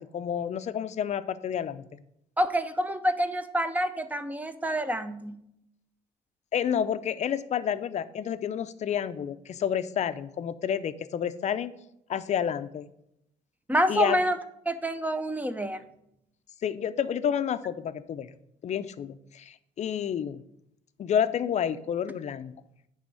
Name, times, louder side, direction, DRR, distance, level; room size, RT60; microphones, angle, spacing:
voice 1, 0.0-2.0 6.5-11.8 12.1-12.9 13.9-14.2 16.6-18.3 18.6-20.4 21.0-22.6, left 8 dB, 40° left, 12 dB, 0.5 m, -30 dB
voice 2, 2.4-5.4 13.7-14.4 14.7-15.8, equal, 10° right, 11 dB, 0.6 m, -27 dB
9.4 x 3.5 x 6.3 m, 0.78 s
cardioid pair, 110°, 17 cm